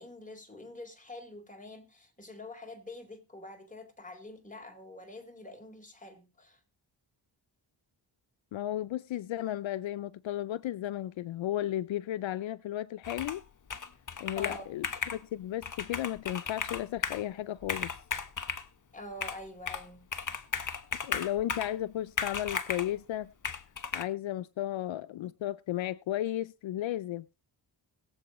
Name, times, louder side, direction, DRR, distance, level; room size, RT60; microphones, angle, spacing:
voice 1, 0.0-6.6 14.3-14.6 18.9-20.1, left 2 dB, 15° left, 4.0 m, -46 dB
voice 2, 8.5-13.4 14.2-14.9 15.1-17.9 21.0-23.3 23.9-27.2, left 13 dB, 75° left, 0.6 m, -34 dB
Computer keyboard, 13.0-13.4 13.7-15.2 15.6-17.2 17.6-18.7 19.2-19.9 20.1-21.8 22.2-22.9 23.4-24.0, left 5 dB, 40° left, 1.3 m, -35 dB
21.5 x 7.8 x 3.1 m
cardioid pair, 65°, 47 cm